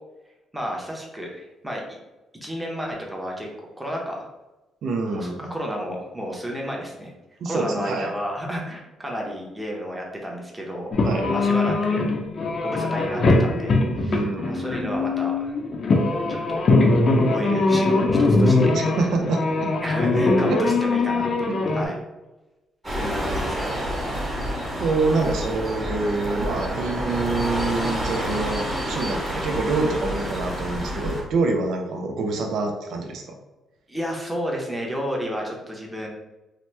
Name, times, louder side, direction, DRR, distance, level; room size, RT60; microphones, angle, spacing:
voice 1, 0.5-1.8 2.4-3.5 3.8-4.3 5.1-7.1 7.4-10.9 11.3-12.1 12.6-15.6 16.3-16.6 17.3-18.7 19.8-21.9 23.0-23.7 33.9-36.1, equal, 5° right, -1 dB, 0.8 m, -31 dB
voice 2, 4.8-5.4 7.4-8.1 11.0-11.3 14.0-14.8 18.7-19.7 20.5-20.6 24.8-33.4, right 3 dB, 70° right, 3 dB, 0.4 m, -26 dB
sound 1, 10.9-21.8, left 2 dB, 50° left, 0.5 m, -21 dB
sound 2, 22.8-31.2, equal, 25° right, 1.2 m, -28 dB
2.8 x 2.1 x 3.2 m, 1.1 s
cardioid pair, 90°, 0 cm